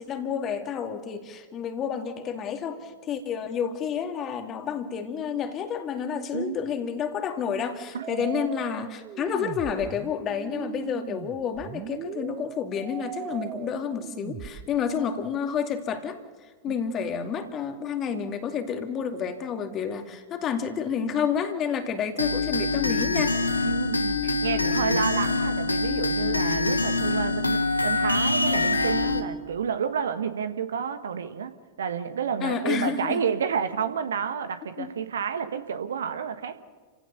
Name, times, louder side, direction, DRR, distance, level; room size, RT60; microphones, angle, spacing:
voice 1, 0.0-16.2 16.6-23.5 32.4-33.2 34.8-34.9, left 7 dB, 30° left, 6 dB, 2.4 m, -30 dB
voice 2, 7.9-8.3 16.7-16.8 23.6-36.6, right 7 dB, 65° right, 10 dB, 1.4 m, -30 dB
sound 1, 8.0-14.6, right 10 dB, 30° right, 1.0 m, -39 dB
sound 2, 22.2-29.2, left 3 dB, 80° left, 1.5 m, -25 dB
29.5 x 16.5 x 7.0 m, 1.4 s
figure-of-eight pair, 90°, 0 cm